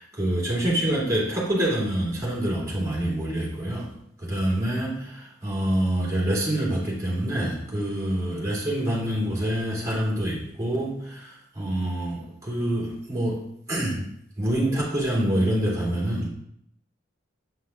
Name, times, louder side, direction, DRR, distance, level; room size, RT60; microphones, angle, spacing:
voice 1, 0.0-13.4 13.7-14.0 14.4-16.3, right 1 dB, 20° right, -7 dB, 2.6 m, -26 dB
7.8 x 5.8 x 2.4 m, 0.72 s
head